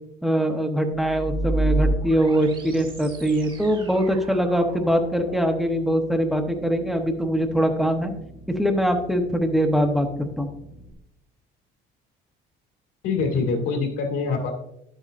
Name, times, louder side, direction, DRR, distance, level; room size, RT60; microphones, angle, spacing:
voice 1, 0.2-8.1 8.6-10.5, equal, ahead, 4 dB, 0.8 m, -22 dB
sound 1, 0.9-10.9, right 1 dB, 25° right, 1.3 m, -32 dB
voice 2, 13.0-14.5, left 4 dB, 80° left, 3 dB, 2.3 m, -24 dB
11.5 x 8.0 x 2.5 m, 0.81 s
cardioid pair, 160°, 21 cm